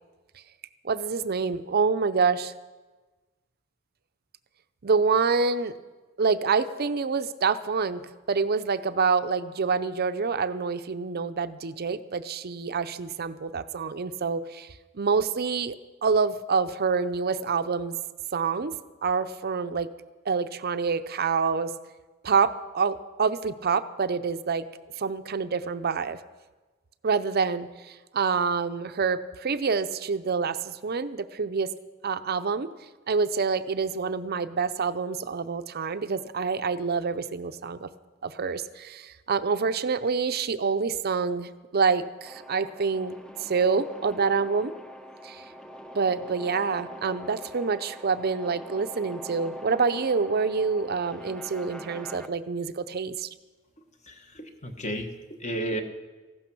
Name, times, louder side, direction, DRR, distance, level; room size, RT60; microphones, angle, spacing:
voice 1, 0.8-2.5 4.8-5.7 6.2-14.7 14.9-15.8 16.0-18.0 18.3-19.9 20.3-21.7 22.2-24.7 25.0-26.2 27.0-31.7 32.0-32.7 33.1-37.9 38.2-44.7 45.2-45.4 45.9-53.3, right 5 dB, 50° right, 12 dB, 0.6 m, -27 dB
sound 1, 42.3-52.3, equal, 5° left, 0.6 m, -43 dB
voice 2, 54.0-55.1 55.4-55.8, right 1 dB, 35° left, 5 dB, 1.4 m, -32 dB
15.0 x 11.5 x 6.1 m, 1.3 s
head